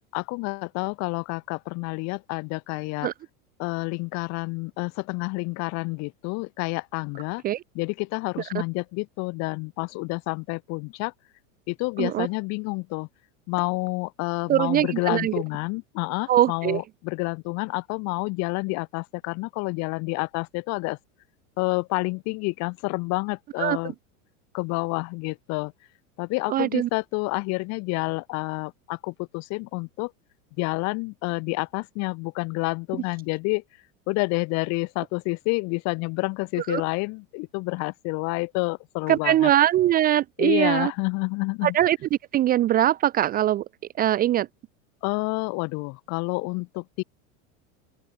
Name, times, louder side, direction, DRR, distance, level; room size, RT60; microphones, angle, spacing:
voice 1, 0.1-3.1 3.6-7.4 7.7-11.1 11.7-13.1 13.5-21.0 21.6-23.9 24.5-25.7 26.2-30.1 30.6-33.6 34.1-39.5 40.4-41.8 45.0-47.0, left 27 dB, 40° left, 0.9 m, -29 dB
voice 2, 14.5-15.3 16.3-16.8 23.6-23.8 26.5-26.9 36.7-36.8 39.1-40.9 41.6-42.0 42.3-43.6 44.0-44.5, right 12 dB, 20° right, 0.5 m, -21 dB
open air
supercardioid pair, 135°, 41 cm